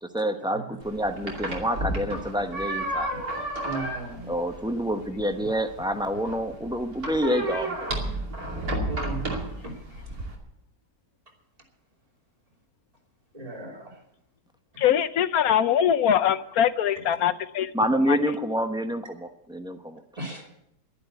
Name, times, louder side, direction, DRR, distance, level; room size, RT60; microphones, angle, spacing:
voice 1, 0.0-3.1 4.3-7.8 17.7-20.0, equal, 5° right, 7 dB, 0.5 m, -27 dB
sound 1, 0.8-10.3, right 1 dB, 60° right, 3.2 m, -32 dB
voice 2, 3.6-4.3 8.9-9.3 13.3-13.8 20.2-20.5, right 2 dB, 20° right, 0 dB, 3.0 m, -35 dB
voice 3, 14.8-17.7 18.1-18.2, left 9 dB, 65° left, 13 dB, 1.1 m, -22 dB
11.5 x 11.0 x 8.0 m, 0.77 s
omnidirectional pair, 1.8 m